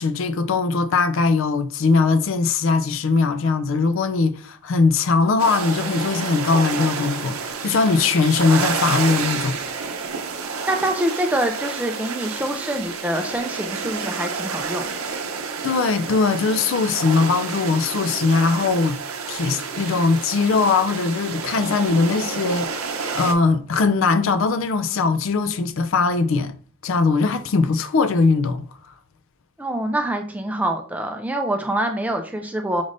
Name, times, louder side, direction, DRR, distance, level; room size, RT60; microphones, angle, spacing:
voice 1, 0.0-9.6 15.6-19.0 19.3-26.6 26.8-28.7, left 4 dB, 65° left, 0.4 m, -20 dB
sound 1, 5.4-23.3, right 5 dB, 80° right, 0.6 m, -29 dB
voice 2, 10.7-14.9 29.6-32.8, right 1 dB, 5° right, 0.4 m, -25 dB
5.2 x 3.3 x 2.5 m
head